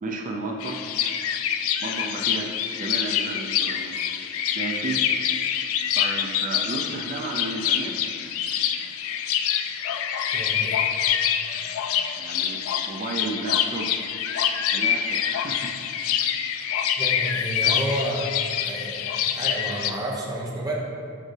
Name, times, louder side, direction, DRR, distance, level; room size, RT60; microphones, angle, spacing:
voice 1, 0.0-0.9 1.8-3.9 4.5-5.0 5.9-7.9 12.1-13.9 14.7-15.7, right 2 dB, 35° right, 1 dB, 0.5 m, -33 dB
sound 1, 0.6-19.9, left 9 dB, 70° left, 0.3 m, -26 dB
voice 2, 10.3-10.8 17.0-18.3 18.6-20.7, right 1 dB, 15° right, -3 dB, 0.9 m, -30 dB
6.5 x 4.9 x 3.2 m, 2.4 s
head